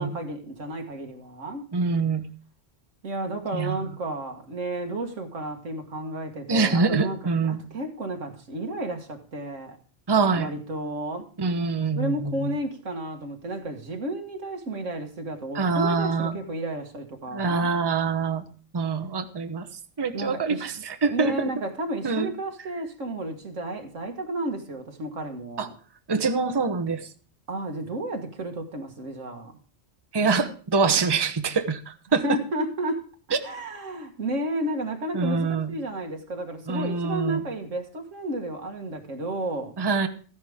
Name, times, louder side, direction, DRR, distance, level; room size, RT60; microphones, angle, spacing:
voice 1, 0.0-1.6 3.0-7.2 7.4-9.8 10.4-11.3 12.0-17.7 20.1-20.7 21.1-25.7 27.5-29.5 32.2-33.1 33.4-39.7, right 1 dB, 90° right, 2.0 m, -32 dB
voice 2, 1.7-2.2 3.5-3.8 6.5-7.6 10.1-10.5 11.4-12.5 15.5-16.4 17.3-18.4 18.7-19.7 20.0-21.5 22.0-22.3 25.6-25.7 26.1-27.1 30.1-32.2 35.1-35.7 36.7-37.4 39.8-40.1, right 4 dB, 25° right, 0.8 m, -25 dB
14.5 x 10.5 x 3.6 m
omnidirectional pair, 1.2 m